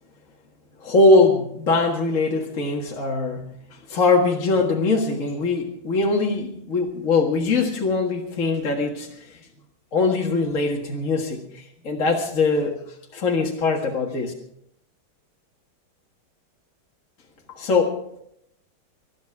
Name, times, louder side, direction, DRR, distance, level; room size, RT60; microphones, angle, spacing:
voice 1, 0.8-9.4 9.9-12.8 13.1-14.3 17.5-18.0, left 3 dB, 40° left, 0 dB, 2.0 m, -22 dB
20.5 x 12.5 x 4.8 m, 0.73 s
omnidirectional pair, 2.3 m